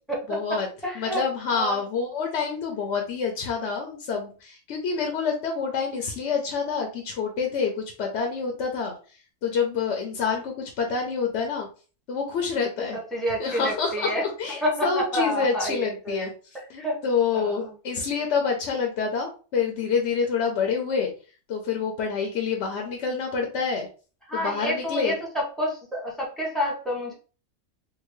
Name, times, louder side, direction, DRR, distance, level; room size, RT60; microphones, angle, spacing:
voice 1, 0.3-0.7 0.9-8.9 9.4-11.7 12.1-13.0 13.4-16.3 16.7-21.1 21.5-23.9 24.3-25.2, left 5 dB, 60° left, 2 dB, 0.8 m, -27 dB
voice 2, 0.8-1.2 1.5-1.8 12.9-14.2 14.6-16.3 16.5-17.0 17.3-17.7 24.3-27.1, equal, ahead, -3 dB, 0.9 m, -29 dB
3.7 x 2.2 x 3.1 m, 0.36 s
omnidirectional pair, 1.6 m